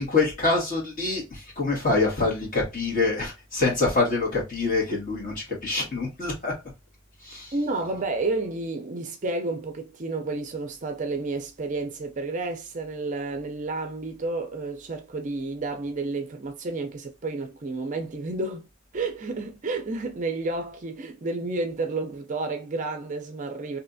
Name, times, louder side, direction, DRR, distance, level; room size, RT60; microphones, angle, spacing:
voice 1, 0.0-6.5 7.2-7.5, left 3 dB, 40° left, 1.6 m, -25 dB
voice 2, 7.5-18.7 18.9-23.8, right 3 dB, 35° right, 0.4 m, -31 dB
3.2 x 2.7 x 2.5 m
head